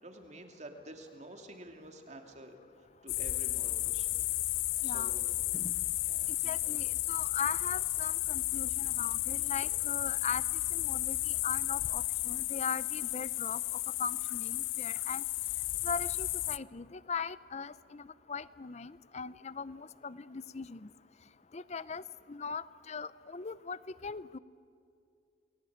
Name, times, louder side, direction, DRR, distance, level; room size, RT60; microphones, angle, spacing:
voice 1, 0.0-2.6 3.0-4.2 4.8-5.4 6.0-6.8, right 1 dB, 35° right, 4 dB, 2.7 m, -50 dB
sound 1, 3.1-16.6, left 17 dB, 80° left, 0.5 m, -33 dB
voice 2, 4.8-5.1 5.5-5.7 6.4-10.4 10.7-15.2 15.8-20.9 21.5-22.0 22.3-24.4, left 5 dB, 35° left, 17 dB, 0.6 m, -39 dB
30.0 x 21.0 x 8.7 m, 2.4 s
head